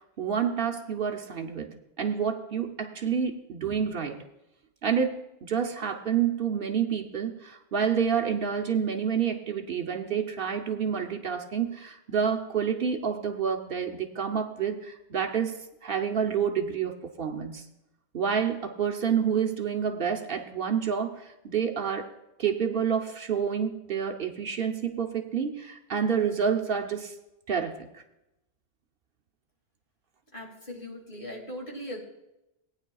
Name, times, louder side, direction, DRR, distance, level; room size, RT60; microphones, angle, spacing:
voice 1, 0.2-1.7 2.0-4.2 4.8-15.5 15.8-17.6 18.1-22.1 22.4-27.1 27.5-27.9, right 7 dB, 60° right, 4 dB, 0.9 m, -28 dB
voice 2, 30.3-32.0, equal, 55° left, -1 dB, 2.5 m, -39 dB
18.0 x 9.6 x 2.3 m, 0.91 s
omnidirectional pair, 1.1 m